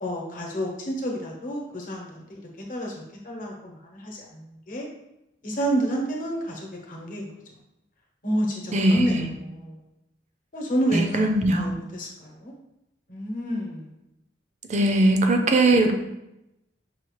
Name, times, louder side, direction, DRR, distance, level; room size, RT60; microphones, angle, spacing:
voice 1, 0.0-2.9 3.2-4.9 5.4-7.3 8.2-9.8 10.5-11.2 11.6-12.5 13.1-13.9, right 1 dB, 50° left, -1 dB, 0.9 m, -29 dB
voice 2, 8.7-9.3 10.9-11.7 14.7-15.9, right 2 dB, 40° right, 5 dB, 0.5 m, -20 dB
5.6 x 2.4 x 3.1 m, 0.88 s
head